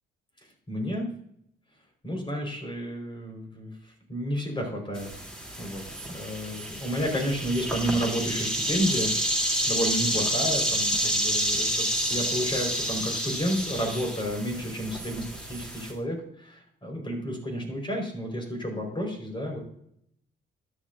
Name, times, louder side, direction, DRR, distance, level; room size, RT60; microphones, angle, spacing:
voice 1, 0.7-1.1 2.0-3.8 4.1-5.1 5.6-19.6, equal, 25° left, 1 dB, 4.3 m, -31 dB
sound 1, 4.9-15.9, equal, 5° left, 2.9 m, -29 dB
13.0 x 9.7 x 2.6 m, 0.69 s
cardioid pair, 90°, 20 cm